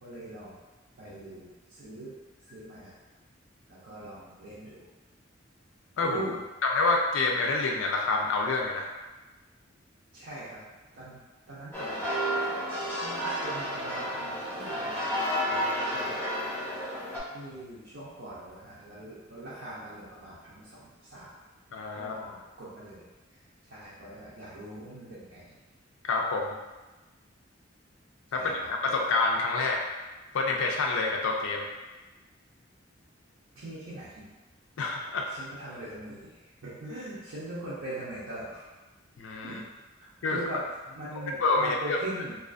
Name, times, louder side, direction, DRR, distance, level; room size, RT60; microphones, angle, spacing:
voice 1, 0.0-0.6 1.0-2.1 2.5-3.0 3.7-4.9 6.0-6.4 10.1-10.6 10.9-11.2 11.5-12.1 13.0-15.1 15.4-16.2 17.3-21.3 22.0-23.1 23.7-25.6 28.3-28.7 33.5-34.3 35.3-38.6 39.4-39.7 40.0-40.6 40.9-42.4, right 1 dB, 70° right, -10 dB, 0.6 m, -41 dB
voice 2, 6.6-8.9 15.5-16.1 21.7-22.4 26.1-26.6 28.3-29.9 30.3-31.6 34.8-35.3 39.2-39.6 40.2-40.4 41.4-42.0, left 3 dB, 80° left, 1 dB, 0.4 m, -28 dB
sound 1, 11.7-17.2, equal, 10° left, 0.6 m, -31 dB
2.4 x 2.4 x 2.4 m, 1.2 s
head